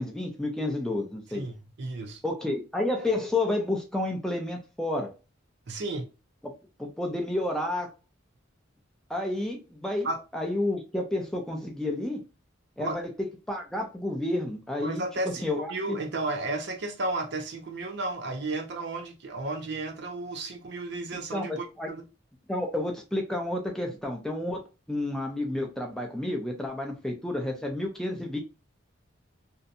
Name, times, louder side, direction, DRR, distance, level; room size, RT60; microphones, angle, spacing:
voice 1, 0.0-1.4 2.2-5.1 6.8-7.9 9.1-10.1 10.3-12.2 12.8-13.0 13.5-15.0 15.4-16.0 21.3-21.9 22.5-24.6 24.9-28.4, left 1 dB, 5° left, 0.4 m, -30 dB
voice 2, 1.3-2.2 5.7-6.1 10.0-10.2 12.8-13.0 14.8-22.0, right 2 dB, 60° right, 0.5 m, -33 dB
2.6 x 2.1 x 2.5 m
head